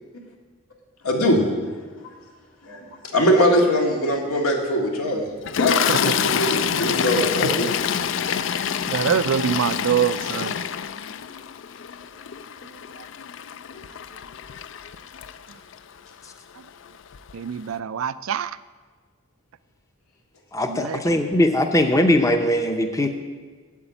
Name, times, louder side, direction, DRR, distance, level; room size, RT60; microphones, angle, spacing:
voice 1, 1.0-1.4 2.6-7.7, equal, 85° left, 0 dB, 2.1 m, -22 dB
Toilet flush, 5.4-15.7 16.7-16.9 17.1-17.3, left 8 dB, 60° left, 0.4 m, -26 dB
voice 2, 5.9-6.3 7.4-7.7 8.9-10.6 12.6-13.1 16.6-16.7 17.3-18.6 20.7-21.2, right 7 dB, 75° right, 15 dB, 0.4 m, -25 dB
voice 3, 20.5-23.1, left 1 dB, 15° left, 6 dB, 0.6 m, -20 dB
8.2 x 7.9 x 9.0 m, 1.5 s
head